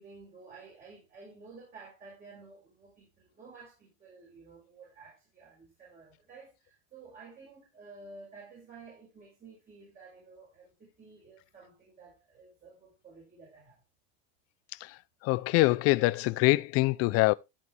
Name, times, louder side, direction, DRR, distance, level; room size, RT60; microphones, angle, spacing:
voice 1, 0.0-13.8, right 4 dB, 25° right, 4.7 m, -52 dB
voice 2, 15.2-17.3, left 21 dB, 45° left, 0.5 m, -24 dB
12.5 x 5.1 x 3.3 m
supercardioid pair, 120°, 34 cm